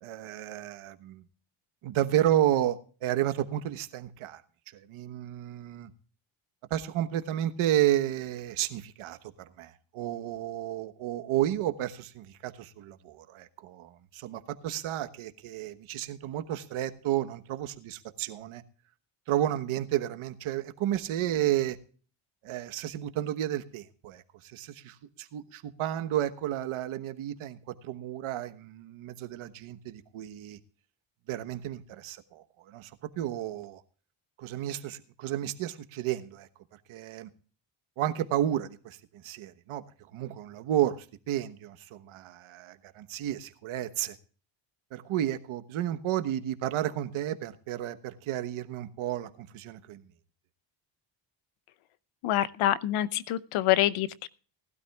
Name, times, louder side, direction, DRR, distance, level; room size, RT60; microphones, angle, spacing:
voice 1, 0.0-1.2 1.8-4.4 4.9-5.9 6.7-18.6 19.3-21.8 22.4-27.6 27.8-30.6 31.3-32.9 33.2-33.8 34.4-36.5 36.9-37.3 38.0-39.8 40.1-44.2 44.9-50.0, right 12 dB, 80° right, 1.3 m, -32 dB
voice 2, 52.2-54.3, left 13 dB, 90° left, 0.8 m, -26 dB
19.0 x 12.5 x 2.3 m
cardioid pair, 110°, 49 cm